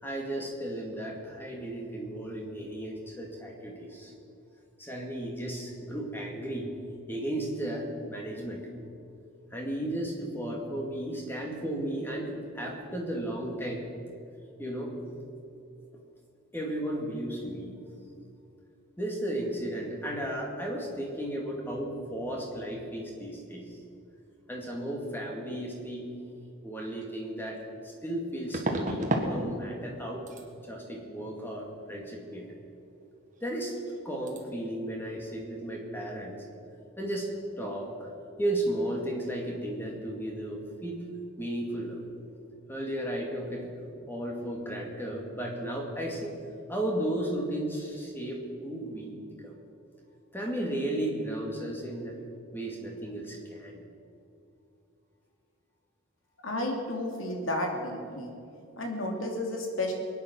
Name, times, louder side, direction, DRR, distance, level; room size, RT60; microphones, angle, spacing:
voice 1, 0.0-4.1 4.8-6.8 7.1-8.7 9.5-13.9 14.6-15.0 16.5-17.8 19.0-23.8 24.5-26.1 26.6-30.3 30.6-32.5 33.4-33.8 34.0-36.4 37.0-38.1 38.4-41.1 41.4-42.1 42.7-43.7 44.0-46.4 46.7-49.1 49.4-49.6 50.3-52.2 52.5-53.8, right 1 dB, 10° left, -1 dB, 2.3 m, -34 dB
sound 1, 27.0-27.1 28.5-29.3 29.6-30.0 30.3-30.5 33.4-33.5 33.8-34.0 34.3-34.4, right 1 dB, 35° right, 1.6 m, -31 dB
voice 2, 56.4-58.3 58.8-59.9, left 1 dB, 75° left, 1 dB, 2.7 m, -32 dB
22.5 x 9.8 x 6.2 m, 2.6 s
head